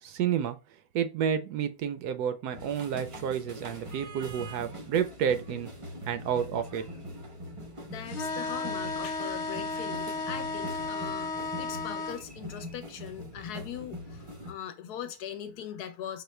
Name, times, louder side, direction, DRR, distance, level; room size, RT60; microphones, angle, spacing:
voice 1, 0.0-0.6 0.9-5.7 6.1-6.9, right 8 dB, 75° right, 1.0 m, -30 dB
sound 1, 2.5-14.5, equal, 45° right, 0.4 m, -42 dB
voice 2, 7.8-16.2, left 9 dB, 70° left, 1.1 m, -40 dB
sound 2, 8.1-12.2, left 3 dB, 50° left, 1.1 m, -34 dB
5.5 x 2.1 x 3.1 m
omnidirectional pair, 1.8 m